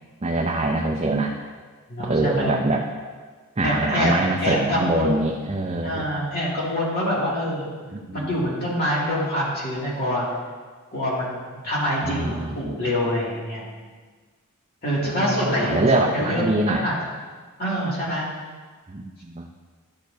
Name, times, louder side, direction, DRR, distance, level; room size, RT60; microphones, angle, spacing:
voice 1, 0.2-1.4 2.1-2.8 3.6-6.1 7.9-8.3 12.0-12.8 15.0-16.8 18.9-19.5, right 2 dB, 25° right, 0 dB, 0.5 m, -24 dB
voice 2, 1.9-2.6 3.6-5.3 5.8-7.7 8.1-10.3 10.9-13.9 14.8-16.9 17.6-18.3, equal, 45° left, -7 dB, 2.5 m, -25 dB
12.0 x 6.4 x 2.7 m, 1.5 s
head